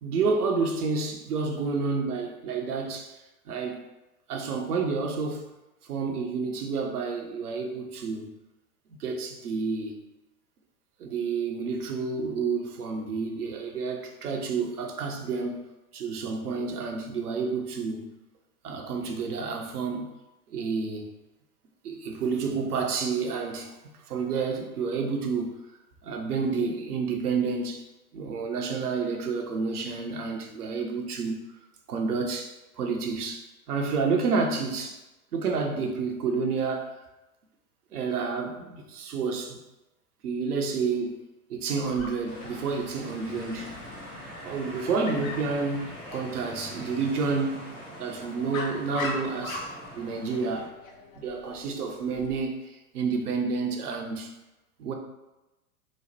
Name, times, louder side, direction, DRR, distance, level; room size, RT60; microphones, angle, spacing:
voice 1, 0.0-3.2 3.5-3.8 4.3-5.5 5.8-8.4 9.0-10.0 11.0-15.6 15.9-18.1 18.6-20.1 20.5-21.1 21.8-23.8 24.1-25.6 26.0-27.8 28.1-31.4 31.9-35.0 35.3-36.9 37.9-39.6 40.2-41.2 41.5-43.8 44.4-47.7 48.0-50.7 51.2-54.3 54.8-54.9, right 4 dB, 75° right, 3 dB, 0.6 m, -29 dB
Dog, 41.8-52.4, left 3 dB, 60° left, 0.6 m, -42 dB
sound 1, 42.3-50.7, right 1 dB, 5° right, 0.4 m, -43 dB
3.0 x 2.0 x 2.8 m, 1.0 s
figure-of-eight pair, 100°, 46 cm